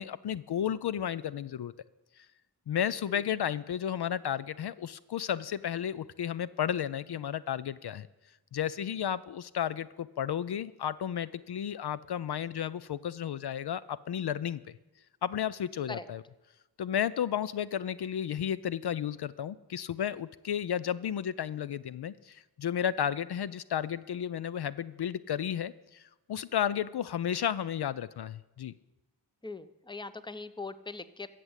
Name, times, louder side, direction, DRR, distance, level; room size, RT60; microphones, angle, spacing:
voice 1, 0.0-1.7 2.2-2.3 2.7-8.1 8.5-14.6 15.2-16.2 16.8-28.7, left 9 dB, 65° left, 16 dB, 0.5 m, -33 dB
voice 2, 29.4-31.3, left 3 dB, 10° left, 14 dB, 0.7 m, -41 dB
14.0 x 7.6 x 8.1 m, 1.0 s
cardioid pair, 55°, 42 cm